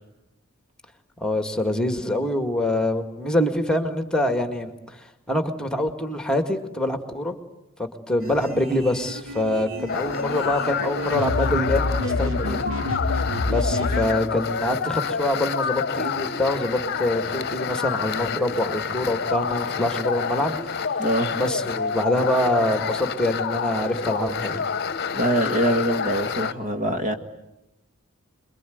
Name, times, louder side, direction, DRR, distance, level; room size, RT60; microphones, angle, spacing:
voice 1, 1.2-5.0 5.3-7.4 7.8-12.7 13.5-20.6 21.3-24.7, left 1 dB, 5° left, 2.0 m, -25 dB
sound 1, 8.2-14.1, left 2 dB, 70° right, 3.4 m, -29 dB
sound 2, 9.9-26.5, left 6 dB, 50° left, 0.9 m, -28 dB
voice 2, 21.0-21.3 25.1-27.1, equal, 40° right, 1.8 m, -23 dB
27.5 x 22.5 x 9.4 m
head